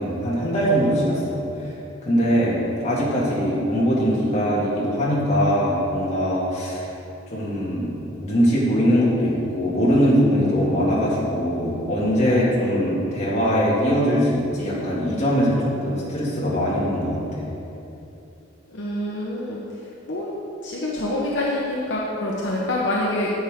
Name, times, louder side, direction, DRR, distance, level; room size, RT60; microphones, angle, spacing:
voice 1, 0.0-1.4 2.1-6.9 7.3-7.9 8.2-15.6 15.8-17.5, equal, 35° left, -7 dB, 2.3 m, -21 dB
voice 2, 18.7-20.3 20.6-23.3, left 1 dB, 60° left, -5 dB, 1.0 m, -26 dB
10.0 x 8.6 x 3.7 m, 2.9 s
head